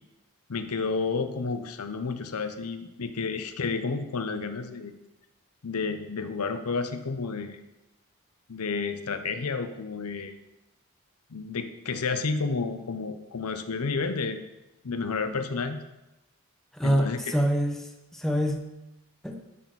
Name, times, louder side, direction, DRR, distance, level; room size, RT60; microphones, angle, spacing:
voice 1, 0.5-4.9 5.6-7.6 8.5-10.4 11.3-14.4 14.8-15.8 16.8-17.3, left 4 dB, 85° left, 9 dB, 0.7 m, -31 dB
voice 2, 16.7-18.6 19.2-19.4, equal, ahead, 2 dB, 0.8 m, -26 dB
11.0 x 4.2 x 6.2 m, 0.99 s
head